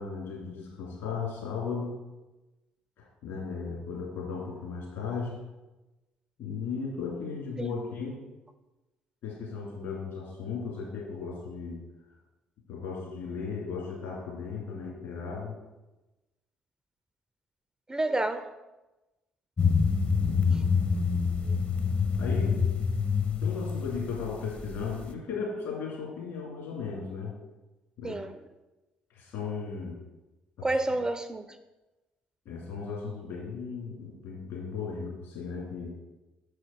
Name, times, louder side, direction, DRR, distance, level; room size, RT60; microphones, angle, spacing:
voice 1, 0.0-2.0 3.0-5.4 6.4-8.2 9.2-11.8 12.7-15.6 22.2-22.6 23.4-27.3 28.0-28.2 29.1-30.0 30.6-30.7 32.4-36.0, left 5 dB, 60° left, -3 dB, 2.5 m, -36 dB
voice 2, 17.9-18.5 20.5-20.6 21.5-21.6 28.0-28.4 30.6-31.6, right 2 dB, 15° right, 11 dB, 0.4 m, -30 dB
sound 1, 19.6-25.1, left 5 dB, 30° left, 0.7 m, -26 dB
6.5 x 4.9 x 4.4 m, 1.1 s
figure-of-eight pair, 45°, 4 cm